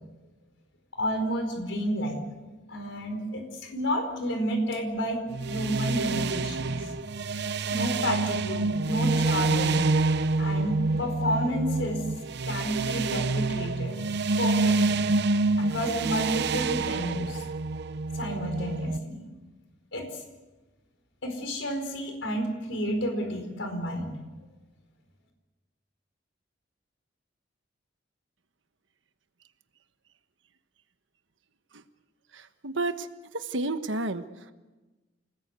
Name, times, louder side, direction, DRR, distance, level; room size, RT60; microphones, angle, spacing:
voice 1, 1.0-2.2 2.7-6.9 7.7-9.8 10.4-12.0 12.4-14.0 14.4-15.0 15.6-17.5 18.1-19.3 19.9-20.2 21.2-24.1, equal, 80° left, 4 dB, 4.6 m, -30 dB
sound 1, 5.3-19.0, right 3 dB, 60° right, 0.7 m, -27 dB
voice 2, 32.3-33.1 33.3-34.2, right 2 dB, 80° right, 9 dB, 1.3 m, -30 dB
28.5 x 19.5 x 8.2 m, 1.2 s
head